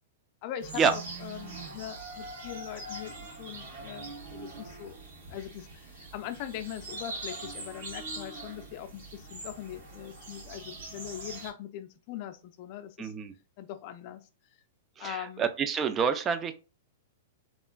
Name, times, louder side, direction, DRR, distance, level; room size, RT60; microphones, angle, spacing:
voice 1, 0.4-3.1 3.4-5.0 5.3-13.1 13.6-14.2 15.0-15.5, left 11 dB, 50° left, 0.4 m, -41 dB
sound 1, 0.6-11.5, right 3 dB, 70° right, 1.4 m, -43 dB
voice 2, 13.0-13.3 15.0-16.5, right 6 dB, 25° right, 0.4 m, -27 dB
2.9 x 2.4 x 2.3 m
hypercardioid pair, 110°, 0 cm